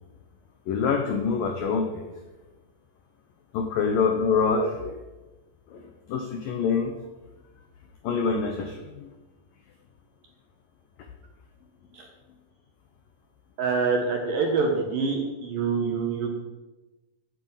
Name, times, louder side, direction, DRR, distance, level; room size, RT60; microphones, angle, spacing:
voice 1, 0.7-2.2 3.5-5.0 5.7-5.8 6.1-6.9 8.0-9.1, left 5 dB, 80° left, 4 dB, 2.0 m, -26 dB
voice 2, 13.6-16.3, right 4 dB, 60° right, 2 dB, 2.6 m, -26 dB
15.5 x 9.6 x 5.7 m, 1.1 s
omnidirectional pair, 5.6 m